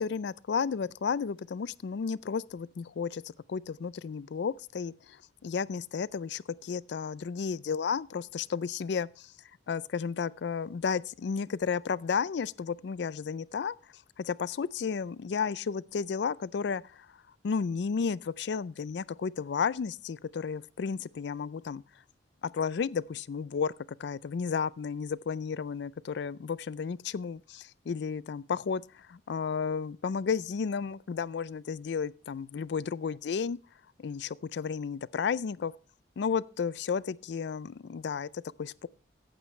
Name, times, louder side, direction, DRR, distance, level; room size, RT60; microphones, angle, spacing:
voice 1, 0.0-3.2 3.5-9.3 9.7-14.0 14.3-17.1 17.4-21.8 22.5-23.7 24.0-33.6 34.0-35.7 36.2-38.9, left 6 dB, 70° left, 0.4 m, -33 dB
14.5 x 9.2 x 3.1 m
head